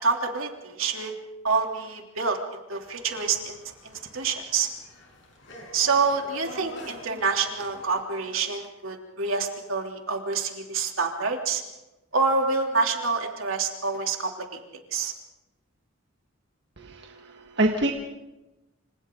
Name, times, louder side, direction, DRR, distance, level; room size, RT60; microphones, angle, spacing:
voice 1, 0.0-1.1 1.4-2.4 2.7-3.6 3.8-4.7 5.7-11.6 12.1-14.6 14.9-15.1, right 4 dB, 80° right, 2 dB, 3.2 m, -27 dB
sound 1, 2.8-7.9, left 1 dB, 60° left, 7.3 m, -46 dB
voice 2, 16.8-17.9, right 1 dB, 55° right, 1 dB, 1.8 m, -26 dB
28.0 x 27.0 x 3.9 m, 0.99 s
head